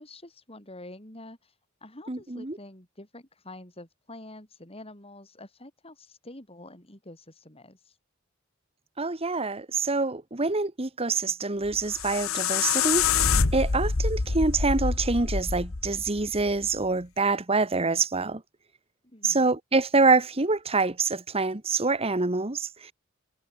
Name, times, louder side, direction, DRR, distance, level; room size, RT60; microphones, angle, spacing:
voice 1, 0.0-1.5 1.8-8.0 19.0-19.5, left 1 dB, 30° left, 6.8 m, -47 dB
voice 2, 2.1-2.6 9.0-13.0 13.5-18.4 19.2-22.9, right 3 dB, 30° right, 1.3 m, -26 dB
sound 1, 11.6-16.7, left 5 dB, 75° left, 1.2 m, -26 dB
head